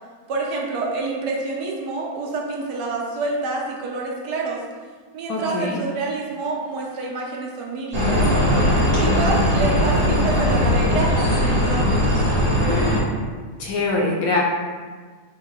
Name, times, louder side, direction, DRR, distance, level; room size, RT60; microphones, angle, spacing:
voice 1, 0.3-4.6 5.1-8.2 9.0-12.5, right 3 dB, 75° right, -2 dB, 1.3 m, -27 dB
voice 2, 5.3-5.8 9.1-9.7 13.6-14.4, left 2 dB, 70° left, -2 dB, 0.9 m, -24 dB
sound 1, 7.9-13.0, left 1 dB, 40° right, 1.7 m, -19 dB
3.9 x 2.4 x 4.6 m, 1.5 s
omnidirectional pair, 1.8 m